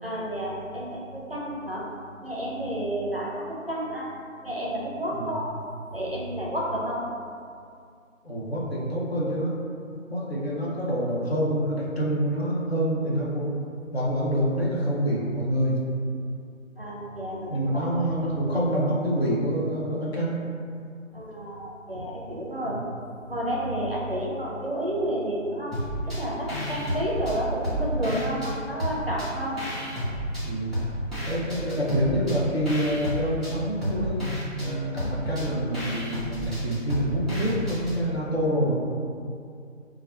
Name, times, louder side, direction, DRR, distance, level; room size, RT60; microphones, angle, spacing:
voice 1, 0.0-1.9 2.2-4.1 4.4-5.5 5.9-7.1 16.8-17.8 18.1-18.2 21.1-22.8 23.3-25.8 26.1-29.6, right 1 dB, 45° right, -4 dB, 0.5 m, -30 dB
voice 2, 8.2-9.6 10.1-13.5 13.9-15.8 17.5-20.4 22.6-22.8 30.4-30.7 31.3-34.2 34.6-38.7, equal, 50° left, -6 dB, 0.7 m, -26 dB
sound 1, 25.7-26.2 26.5-28.5 28.8-30.4 30.7-38.0, equal, ahead, 0.6 m, -31 dB
4.8 x 2.3 x 2.3 m, 2.4 s
figure-of-eight pair, 170°, 40 cm